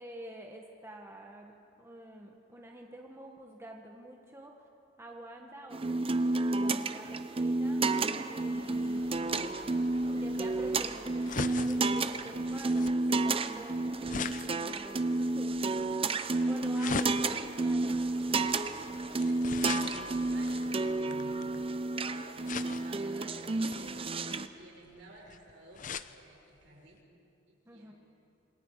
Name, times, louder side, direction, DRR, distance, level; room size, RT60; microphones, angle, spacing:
voice 1, 0.0-1.5 1.8-4.5 5.0-9.3 10.1-18.0 27.7-27.9, right 1 dB, 15° right, 0 dB, 1.6 m, -48 dB
sound 1, 5.7-24.5, right 2 dB, 30° right, 0.7 m, -31 dB
sound 2, 8.5-14.0 17.5-22.3, equal, 25° left, 4.2 m, -56 dB
sound 3, 9.1-21.8 22.5-23.1 23.6-26.1 26.6-26.7 26.9-27.0, left 5 dB, 45° left, 0.7 m, -41 dB
voice 2, 18.9-21.5 22.1-27.0 27.5-27.9, right 1 dB, 70° right, -2 dB, 6.6 m, -53 dB
27.5 x 24.0 x 4.9 m, 2.5 s
head